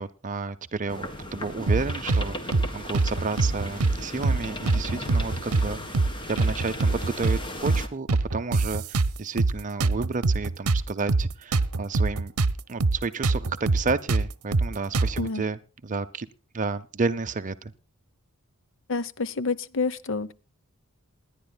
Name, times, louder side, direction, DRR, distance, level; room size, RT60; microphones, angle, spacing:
voice 1, 0.0-12.3 12.7-16.3 16.5-17.7, right 4 dB, 35° right, 0.6 m, -31 dB
sound 1, 0.9-7.9, left 1 dB, 20° left, 1.9 m, -37 dB
sound 2, 1.7-2.3 2.5-2.7 2.9-4.0 4.2-4.4 4.7-5.7 5.9-6.1 6.4-7.4 7.7-7.8 8.1-9.5 9.8-12.5 12.8-13.0 13.2-15.3, right 3 dB, 80° right, 0.8 m, -23 dB
voice 2, 18.9-20.3, left 3 dB, 60° left, 0.8 m, -28 dB
28.0 x 10.5 x 2.3 m
head